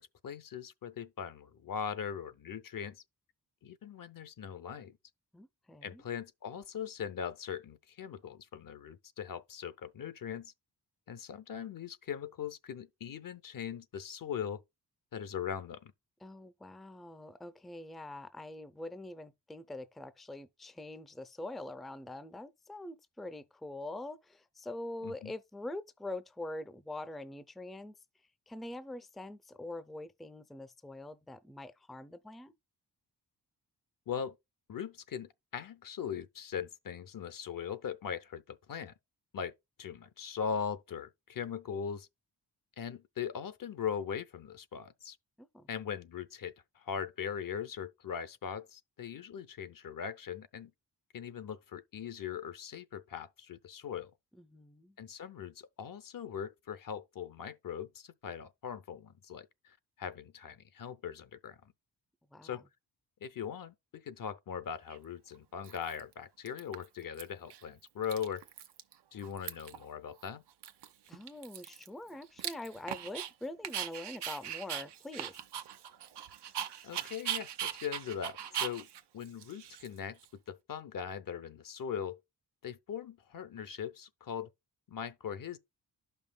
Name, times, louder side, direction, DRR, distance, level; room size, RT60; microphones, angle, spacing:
voice 1, 0.0-3.0 3.6-5.0 5.8-10.5 11.1-14.6 15.1-15.9 25.0-25.3 34.1-34.4 34.7-38.9 39.3-39.5 39.8-42.1 42.8-45.2 45.7-50.7 51.1-54.1 55.0-61.7 62.4-62.6 63.2-68.4 69.1-70.4 76.8-78.9 79.1-82.2 82.6-84.5 84.9-85.6, left 7 dB, 55° left, 0.7 m, -40 dB
voice 2, 5.3-6.0 16.2-27.9 28.5-32.5 45.4-45.7 54.3-55.0 62.3-62.6 71.1-75.4, left 1 dB, ahead, 0.5 m, -44 dB
Dog, 64.9-65.0 65.6-66.1 66.5-67.2 67.5-67.6 67.9-68.9 69.2-69.8 70.2-70.3 70.6-73.3 73.6-80.3, right 9 dB, 85° right, 0.8 m, -40 dB
12.0 x 5.5 x 2.2 m
cardioid pair, 70°, 40 cm